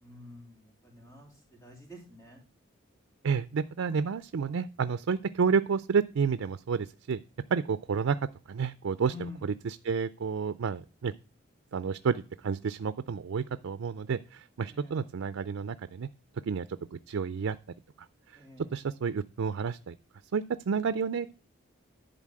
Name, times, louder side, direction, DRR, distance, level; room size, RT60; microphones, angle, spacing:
voice 1, 0.0-0.6 0.9-1.3 1.6-2.4 9.1-9.4 14.7-15.0 18.4-18.7, left 2 dB, 15° left, -1 dB, 3.3 m, -47 dB
voice 2, 3.2-7.2 7.5-8.2 8.5-11.1 11.7-16.1 16.5-16.7 16.9-17.6 18.6-20.0 20.3-21.3, right 6 dB, 85° right, 13 dB, 0.4 m, -30 dB
11.0 x 4.0 x 7.5 m, 0.36 s
head